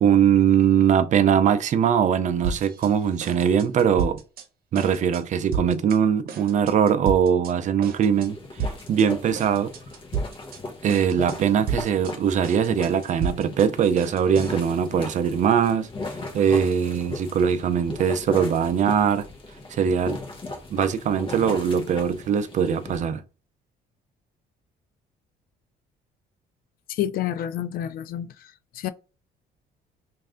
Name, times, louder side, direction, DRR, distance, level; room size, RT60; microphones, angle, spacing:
voice 1, 0.0-4.2 4.7-9.7 10.8-15.9 16.3-19.2 19.7-20.2 20.7-23.2, right 8 dB, 45° right, 0.5 m, -21 dB
sound 1, 2.4-2.9 3.2-4.5 4.7-5.2 5.5-6.0 6.3-7.5 7.8-8.3 8.6-9.1 9.4-10.6 10.9-11.4 11.7-14.7, right 5 dB, 65° right, 0.9 m, -32 dB
sound 2, 8.1-23.0, left 2 dB, 30° left, 1.1 m, -37 dB
voice 2, 26.9-28.3 28.7-28.9, left 11 dB, 60° left, 0.4 m, -28 dB
3.2 x 2.6 x 3.6 m
cardioid pair, 110°, 17 cm